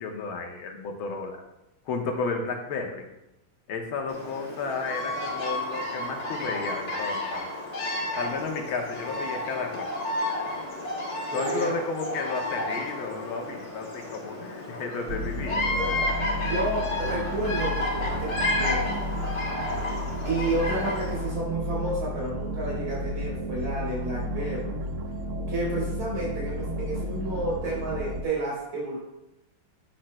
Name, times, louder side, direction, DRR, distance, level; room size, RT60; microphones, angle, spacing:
voice 1, 0.0-1.4 1.9-3.1 3.7-7.5 8.2-9.9 11.3-15.7, left 4 dB, 90° left, 2 dB, 2.0 m, -32 dB
Bird vocalization bird call bird song, 4.1-21.3, left 1 dB, 50° left, 2.2 m, -31 dB
voice 2, 11.3-11.8 16.4-19.0 20.2-24.8 25.5-29.0, right 2 dB, 85° right, -5 dB, 4.3 m, -31 dB
sound 1, 15.1-28.2, equal, 65° right, 0.7 m, -32 dB
10.5 x 9.1 x 2.2 m, 0.91 s
omnidirectional pair, 2.2 m